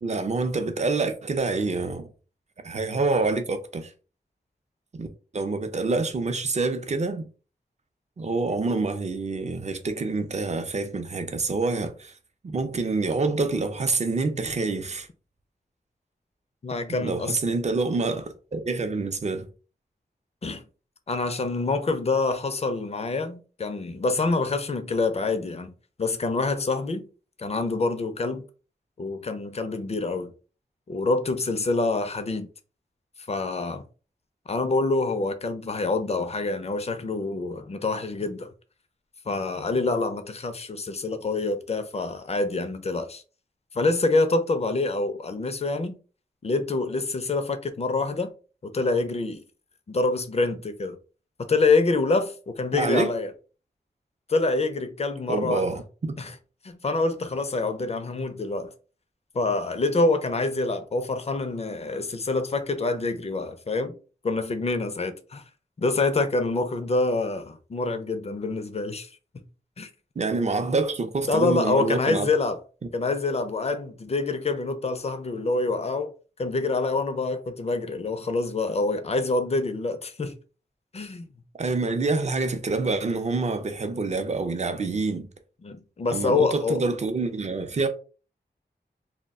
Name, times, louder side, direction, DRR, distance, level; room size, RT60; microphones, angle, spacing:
voice 1, 0.0-2.1 2.6-3.9 4.9-5.1 5.3-7.3 8.2-12.1 12.4-15.1 16.9-19.5 52.7-53.1 55.3-56.2 70.2-72.3 81.6-85.3 86.1-87.9, right 3 dB, 40° right, 0.5 m, -27 dB
voice 2, 16.6-17.4 20.4-20.6 21.1-25.7 26.0-27.1 27.4-28.4 29.0-30.3 30.9-32.5 33.2-33.8 34.5-38.5 39.3-43.2 43.7-46.0 46.4-48.3 48.6-49.4 49.9-51.0 51.4-53.3 54.3-55.7 56.2-56.3 56.6-58.7 59.3-64.0 64.2-65.4 65.8-69.1 69.3-69.4 69.8-69.9 71.3-72.6 72.9-76.1 76.4-80.3 80.9-81.3 85.6-86.8, left 3 dB, 40° left, 0.4 m, -26 dB
2.2 x 2.1 x 3.5 m
wide cardioid pair, 85°, 17 cm